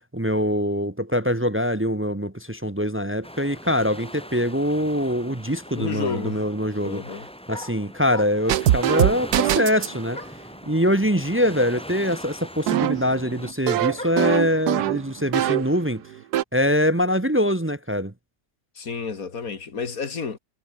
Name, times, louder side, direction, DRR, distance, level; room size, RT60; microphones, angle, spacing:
voice 1, 0.1-7.0 7.5-10.2 10.7-16.0 16.5-18.1, equal, 15° right, 0.4 m, -23 dB
sound 1, 3.2-13.5, equal, 5° left, 4.9 m, -41 dB
sound 2, 5.5-5.6 6.0-6.5 7.5-8.7 10.1-10.6 11.5-11.6 11.8-14.4, left 1 dB, 25° left, 5.8 m, -41 dB
voice 2, 5.7-6.4 6.8-7.3 18.8-20.4, left 5 dB, 55° left, 2.5 m, -30 dB
sound 3, 8.5-10.0 12.7-15.8 16.1-16.4, right 12 dB, 70° right, 1.3 m, -23 dB
omnidirectional pair, 1.8 m